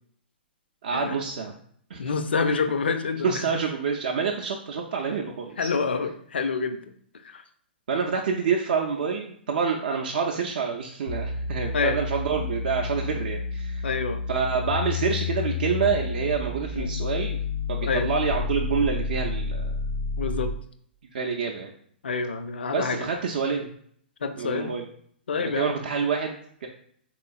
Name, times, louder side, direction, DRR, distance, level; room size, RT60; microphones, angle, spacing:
voice 1, 0.8-1.5 1.9-2.0 2.5-2.6 3.2-5.7 7.9-13.9 14.3-17.4 17.7-19.7 21.1-21.7 22.7-23.7 24.4-24.9 25.6-26.7, right 5 dB, 60° right, 1 dB, 0.4 m, -27 dB
voice 2, 2.0-3.6 5.6-6.8 7.2-7.4 11.7-12.0 13.8-14.2 16.7-16.9 17.8-18.1 20.2-20.5 22.0-23.1 24.2-24.7 25.3-25.7, left 5 dB, 70° left, 9 dB, 0.4 m, -27 dB
sound 1, 11.1-20.7, left 4 dB, 85° left, 0.8 m, -30 dB
3.8 x 3.0 x 2.3 m, 0.63 s
figure-of-eight pair, 115°, 6 cm